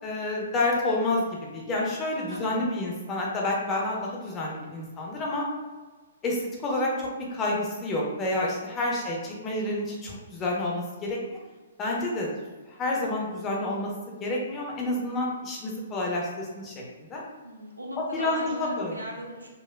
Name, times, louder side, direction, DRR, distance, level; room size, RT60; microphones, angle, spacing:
voice 1, 0.0-1.3 1.5-5.5 6.2-11.4 11.8-12.3 12.7-16.7 17.0-17.2 18.0-19.0, left 2 dB, 20° left, -3 dB, 0.8 m, -29 dB
voice 2, 2.1-2.9 9.0-9.1 17.4-19.5, equal, 80° right, -1 dB, 0.8 m, -39 dB
4.4 x 2.4 x 2.3 m, 1.3 s
figure-of-eight pair, 120°, 0 cm